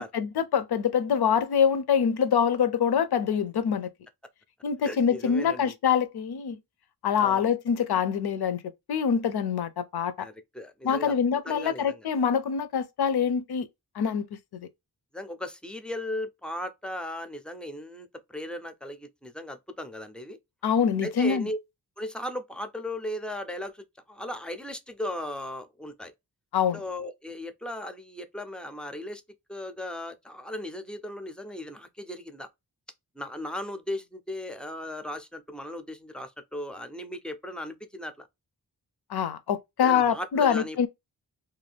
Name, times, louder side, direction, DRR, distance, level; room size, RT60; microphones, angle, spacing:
voice 1, 0.0-3.9 4.6-6.6 7.0-8.6 8.9-10.3 10.8-13.7 14.0-14.7 20.6-21.5 26.5-26.8 39.1-40.9, left 7 dB, 75° left, 0.6 m, -25 dB
voice 2, 4.8-5.7 7.2-7.5 10.2-11.1 11.4-12.1 15.1-20.4 21.0-21.6 22.0-26.1 26.7-29.2 29.5-32.5 33.2-38.3 39.8-40.8, left 1 dB, 5° left, 0.4 m, -37 dB
2.6 x 2.2 x 3.3 m
wide cardioid pair, 100°, 38 cm